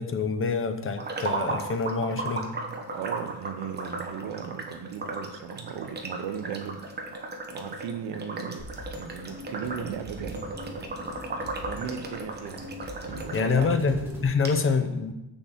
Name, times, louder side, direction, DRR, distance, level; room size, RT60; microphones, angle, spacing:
voice 1, 0.0-2.5 13.3-15.1, left 5 dB, 30° left, 8 dB, 0.7 m, -26 dB
sound 1, 1.0-13.7 14.1-14.2 14.4-14.5, right 2 dB, 25° right, 1.0 m, -36 dB
voice 2, 2.9-6.8 7.1-7.3 7.5-8.6 9.0-10.9 11.3-12.7 13.0-13.8, right 8 dB, 85° right, 9 dB, 0.9 m, -37 dB
sound 2, 8.6-14.2, equal, 5° right, 2.3 m, -42 dB
6.8 x 5.6 x 7.2 m, 0.93 s
cardioid pair, 160°, 41 cm